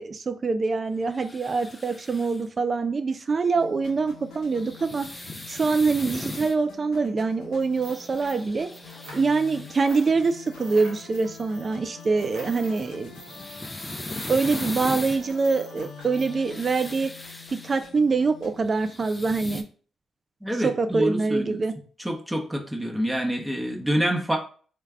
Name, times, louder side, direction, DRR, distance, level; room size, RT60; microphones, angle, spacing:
voice 1, 0.0-5.2 5.5-8.7 9.1-13.1 14.3-17.1 17.5-19.6 20.6-21.7, right 4 dB, 45° right, 9 dB, 0.3 m, -24 dB
sound 1, 1.1-2.4 4.4-6.6 7.8-10.1 12.8-15.2 16.0-17.9 18.5-19.6, left 2 dB, 20° left, 0.5 m, -39 dB
sound 2, 3.5-18.5, left 6 dB, 75° left, 0.6 m, -46 dB
sound 3, 7.6-9.5 9.8-16.3, right 2 dB, 75° right, 1.0 m, -46 dB
voice 2, 20.4-21.6 22.0-24.4, equal, 10° right, 1 dB, 0.8 m, -27 dB
3.2 x 2.2 x 3.5 m, 0.41 s
hypercardioid pair, 40°, 0 cm